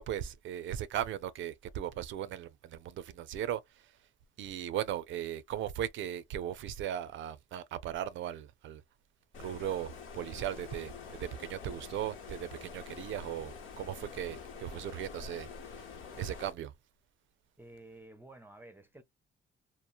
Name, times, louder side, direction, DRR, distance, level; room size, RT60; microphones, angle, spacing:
voice 1, 0.0-3.9 4.4-8.8 9.4-15.5 15.8-15.9 16.2-16.7, right 11 dB, 75° right, 0.5 m, -38 dB
Stream, 9.3-16.5, left 5 dB, 85° left, 1.0 m, -47 dB
voice 2, 17.6-19.0, right 2 dB, 10° right, 0.5 m, -52 dB
2.9 x 2.0 x 2.4 m
cardioid pair, 90°, 20 cm